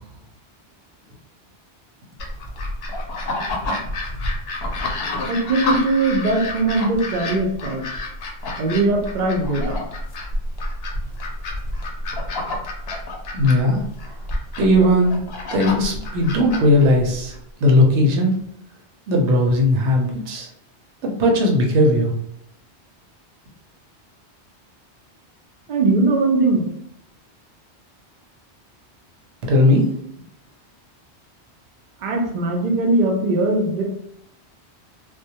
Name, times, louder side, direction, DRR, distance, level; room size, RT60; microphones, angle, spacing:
sound 1, 2.2-17.4, left 2 dB, 65° left, 0.7 m, -29 dB
voice 1, 5.3-7.8 8.6-9.8 25.7-26.7 32.0-33.8, right 2 dB, 55° right, 1 dB, 0.6 m, -20 dB
voice 2, 13.3-13.8 14.6-15.2 15.5-17.3 17.6-18.3 19.1-20.5 21.0-22.1 29.4-29.9, left 1 dB, 80° right, 1 dB, 0.9 m, -17 dB
2.2 x 2.1 x 2.7 m, 0.76 s
omnidirectional pair, 1.2 m